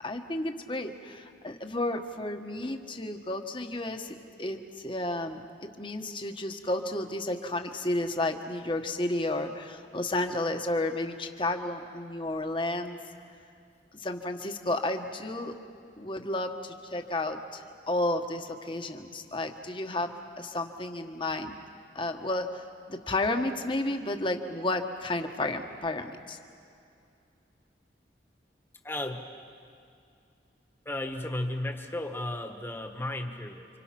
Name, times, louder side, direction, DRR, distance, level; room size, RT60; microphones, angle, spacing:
voice 1, 0.0-13.0 13.9-15.5 16.0-21.5 21.9-26.4, left 2 dB, 30° left, 5 dB, 1.4 m, -32 dB
voice 2, 28.8-29.2 30.8-33.7, left 1 dB, 15° left, 4 dB, 1.5 m, -34 dB
30.0 x 26.0 x 6.0 m, 2.5 s
head